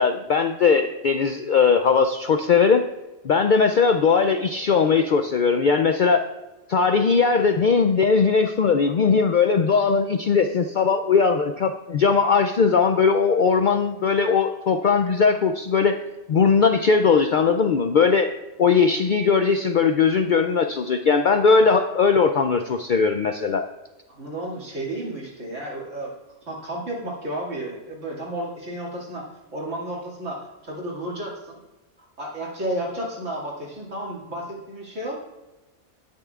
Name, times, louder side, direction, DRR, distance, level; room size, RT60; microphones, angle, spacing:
voice 1, 0.0-2.8 3.2-6.3 6.7-16.0 16.3-18.3 18.6-23.7, left 5 dB, 65° left, 7 dB, 0.5 m, -19 dB
voice 2, 24.1-26.2 26.4-31.6 32.2-35.2, right 1 dB, 75° right, -4 dB, 2.6 m, -32 dB
19.0 x 6.6 x 2.4 m, 1.1 s
omnidirectional pair, 1.3 m